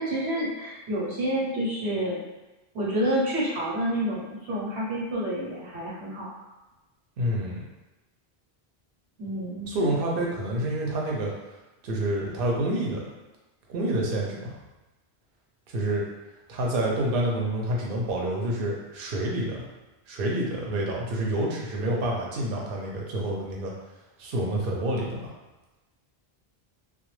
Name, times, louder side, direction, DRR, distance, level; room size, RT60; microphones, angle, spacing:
voice 1, 0.0-2.2 2.7-6.3 9.2-9.7, right 1 dB, 85° right, -7 dB, 1.0 m, -28 dB
voice 2, 7.2-7.6 9.7-11.3 11.8-13.1 13.7-14.5 15.7-16.1 16.5-19.6 20.1-23.7 24.2-25.3, right 1 dB, 65° right, -2 dB, 0.7 m, -28 dB
2.2 x 2.1 x 3.0 m, 1.1 s
omnidirectional pair, 1.1 m